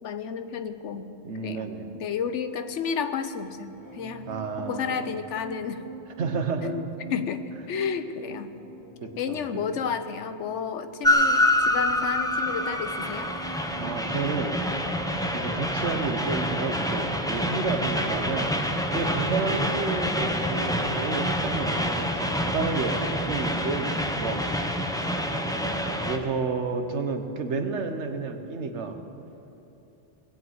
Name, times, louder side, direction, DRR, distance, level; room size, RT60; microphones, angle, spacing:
voice 1, 0.0-1.1 1.4-4.3 4.7-5.8 6.6-7.4 7.7-8.5 9.2-13.3 25.4-25.8, left 7 dB, 85° left, 10 dB, 1.1 m, -32 dB
voice 2, 1.2-1.9 4.3-5.2 6.2-6.7 9.0-9.6 13.8-14.6 15.3-18.5 18.9-23.0 23.3-24.8 26.0-29.0, right 4 dB, 75° right, 7 dB, 1.4 m, -31 dB
sound 1, 3.4-20.1 20.3-20.7, right 5 dB, 25° left, 3.5 m, -46 dB
Train, 11.0-26.2, left 1 dB, 5° left, 0.7 m, -27 dB
20.5 x 8.0 x 8.0 m, 2.9 s
omnidirectional pair, 1.2 m